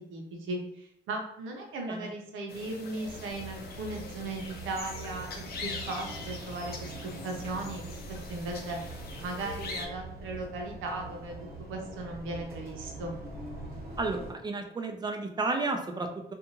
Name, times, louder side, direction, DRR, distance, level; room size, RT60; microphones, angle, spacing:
voice 1, 0.1-7.9 8.3-8.8 9.2-11.3 11.7-13.2, right 2 dB, 85° right, 1 dB, 0.7 m, -37 dB
sound 1, 2.5-9.9, left 4 dB, 50° left, 0.6 m, -43 dB
sound 2, 3.0-14.3, right 3 dB, 50° right, 0.9 m, -44 dB
voice 2, 14.0-16.3, right 3 dB, 20° right, 4 dB, 0.5 m, -32 dB
2.6 x 2.3 x 2.9 m, 0.76 s
cardioid pair, 90°, 20 cm